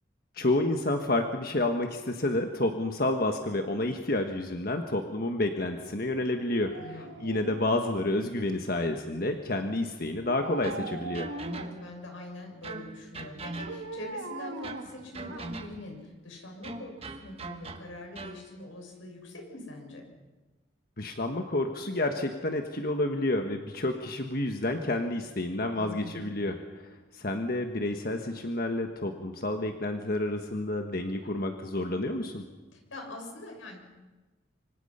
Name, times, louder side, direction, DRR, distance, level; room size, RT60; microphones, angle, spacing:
voice 1, 0.3-11.3 21.0-32.4, left 1 dB, 50° left, 5 dB, 1.4 m, -30 dB
Dog, 6.5-8.5 10.2-11.9 13.7-15.8 16.1-16.2, right 3 dB, 90° right, 2.0 m, -41 dB
voice 2, 6.7-7.3 11.4-20.0 25.7-26.3 32.7-33.8, left 2 dB, 85° left, 2 dB, 6.7 m, -43 dB
sound 1, 10.6-12.0 12.6-14.1 14.6-16.0 16.6-18.5, right 3 dB, 30° right, 1.3 m, -42 dB
25.5 x 25.5 x 5.7 m, 1.2 s
head